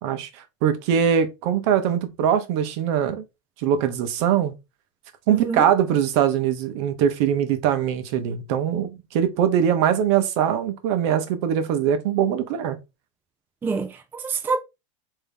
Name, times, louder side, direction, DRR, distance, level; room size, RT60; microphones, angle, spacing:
voice 1, 0.0-3.2 3.6-4.5 5.3-12.8, right 9 dB, 55° right, 0.8 m, -22 dB
voice 2, 5.3-5.7 13.6-14.6, right 4 dB, 10° right, 0.4 m, -26 dB
3.4 x 2.7 x 3.4 m
supercardioid pair, 145°, 17 cm